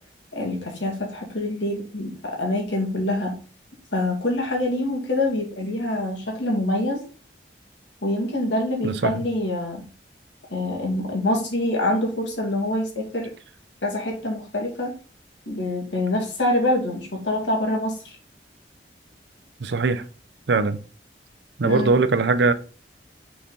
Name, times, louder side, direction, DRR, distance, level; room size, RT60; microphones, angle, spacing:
voice 1, 0.3-3.3 3.9-7.0 8.0-9.8 10.5-13.3 13.8-14.9 15.5-18.1 21.6-21.9, left 1 dB, 85° left, 2.2 m, -25 dB
voice 2, 8.8-9.2 19.6-20.1 20.5-20.8 21.6-22.5, right 4 dB, 75° right, 0.6 m, -21 dB
6.2 x 4.1 x 3.9 m
head